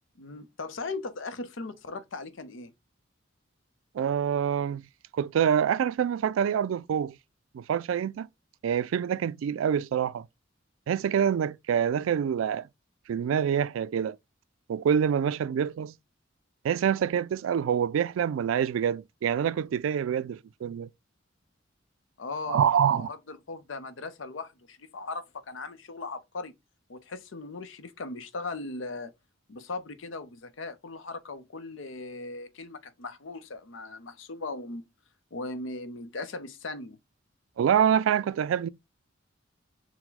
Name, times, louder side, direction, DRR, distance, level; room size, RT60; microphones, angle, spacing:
voice 1, 0.2-2.7 22.2-26.5 26.9-29.1 29.5-34.9 35.3-37.0, left 3 dB, 75° left, 0.6 m, -38 dB
voice 2, 3.9-4.8 5.2-7.1 7.5-8.3 8.6-10.3 10.9-12.7 13.1-14.2 14.7-15.9 16.6-20.9 22.5-23.1 37.6-38.7, right 8 dB, 85° right, 0.3 m, -26 dB
4.5 x 2.1 x 4.0 m
head